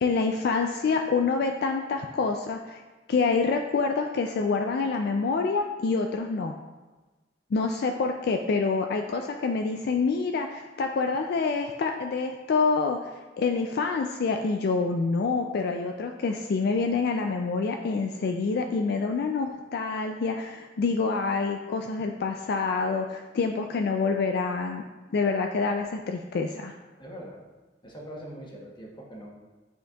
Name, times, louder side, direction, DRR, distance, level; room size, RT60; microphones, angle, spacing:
voice 1, 0.0-2.8 3.1-6.5 7.5-24.8 25.1-26.7, left 4 dB, 60° left, 4 dB, 0.3 m, -27 dB
voice 2, 27.0-27.4 27.8-29.3, equal, 25° left, -2 dB, 1.1 m, -42 dB
9.1 x 4.4 x 2.3 m, 1.2 s
head